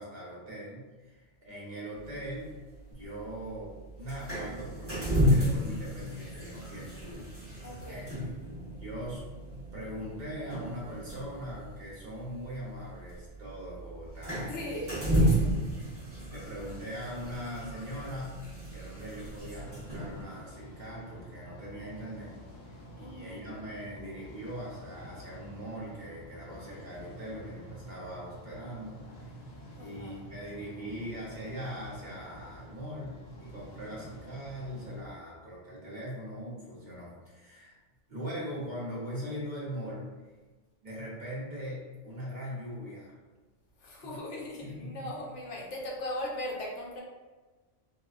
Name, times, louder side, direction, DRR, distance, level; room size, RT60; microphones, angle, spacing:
voice 1, 0.0-2.5 2.9-8.3 8.8-9.2 9.7-14.7 16.3-18.3 18.7-22.3 22.7-29.3 29.8-37.8 38.1-40.1 40.8-43.1 44.0-44.2 44.6-45.1, equal, 45° right, -7 dB, 0.9 m, -41 dB
sound 1, 2.0-20.2, equal, 10° right, 1.0 m, -33 dB
voice 2, 7.6-8.1 14.4-16.0 23.0-23.4 29.8-30.2 43.8-47.0, left 1 dB, 75° left, -2 dB, 1.0 m, -39 dB
sound 2, 19.5-35.0, equal, 40° left, 0.4 m, -48 dB
4.1 x 2.1 x 2.4 m, 1.3 s
omnidirectional pair, 1.2 m